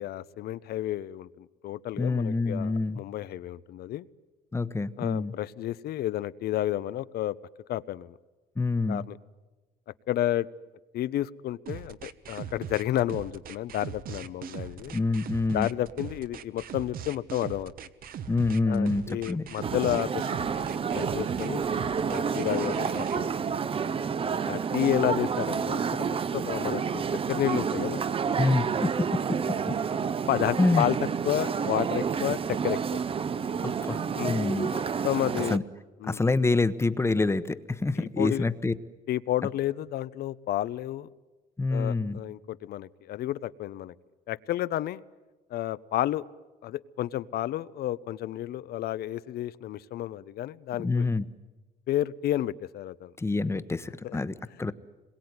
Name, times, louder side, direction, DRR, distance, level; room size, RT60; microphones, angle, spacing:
voice 1, 0.0-4.1 5.0-7.4 7.7-8.1 8.9-9.2 10.1-10.5 10.9-14.9 15.5-17.7 18.7-21.6 22.0-23.3 24.5-27.0 27.3-28.0 30.3-31.0 31.2-32.8 34.1-35.6 36.0-36.2 38.0-38.5 39.1-41.1 41.7-43.9 44.3-45.0 45.5-46.2 46.6-51.1 51.9-53.1 54.0-54.2, left 13 dB, 65° left, 16 dB, 0.8 m, -31 dB
voice 2, 2.0-3.0 4.5-5.3 8.6-9.0 14.9-15.7 18.3-19.5 28.4-28.7 29.7-29.8 30.6-30.9 33.6-34.0 34.3-34.7 34.9-35.1 35.5-35.6 36.1-38.7 41.6-42.2 50.8-51.3 53.2-54.7, left 3 dB, 15° left, 13 dB, 1.1 m, -26 dB
sound 1, 11.7-23.2, right 8 dB, 60° right, 1.2 m, -40 dB
sound 2, 19.6-35.6, right 6 dB, 35° right, 0.8 m, -29 dB
27.0 x 22.0 x 9.7 m, 1.2 s
cardioid pair, 110°, 17 cm